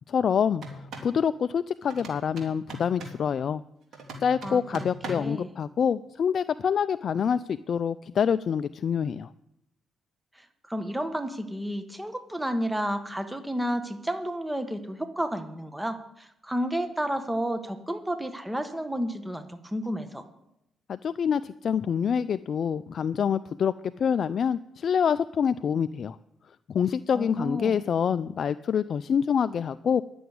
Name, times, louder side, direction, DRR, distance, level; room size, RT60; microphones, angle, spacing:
voice 1, 0.1-3.6 4.2-9.3 20.9-26.2 26.7-30.0, left 7 dB, 55° left, 13 dB, 0.3 m, -26 dB
sound 1, 0.5-1.2 1.9-3.2 3.9-5.4, right 1 dB, 65° right, 2.9 m, -40 dB
voice 2, 5.1-5.5 10.3-20.2 27.1-27.8, equal, 5° right, 7 dB, 1.2 m, -31 dB
11.0 x 7.0 x 9.5 m, 0.81 s
cardioid pair, 90°, 0 cm